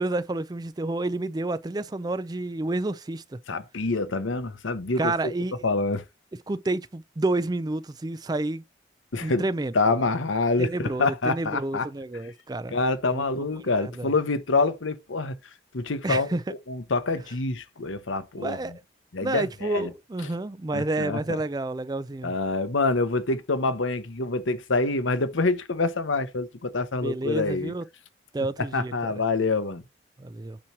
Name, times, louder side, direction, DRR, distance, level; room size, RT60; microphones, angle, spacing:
voice 1, 0.0-3.4 5.0-5.6 6.5-8.6 9.2-10.0 10.6-12.8 13.1-13.5 13.8-14.1 16.0-16.4 18.4-18.7 19.2-22.3 27.0-27.8 28.3-29.2 30.2-30.6, right 2 dB, 20° right, 0.4 m, -30 dB
voice 2, 3.5-5.3 5.6-6.0 9.1-9.5 9.7-11.9 12.7-15.4 15.7-18.6 19.1-19.9 20.7-21.4 22.2-27.7 28.7-29.8, left 3 dB, 90° left, 0.9 m, -26 dB
8.6 x 3.1 x 5.8 m
head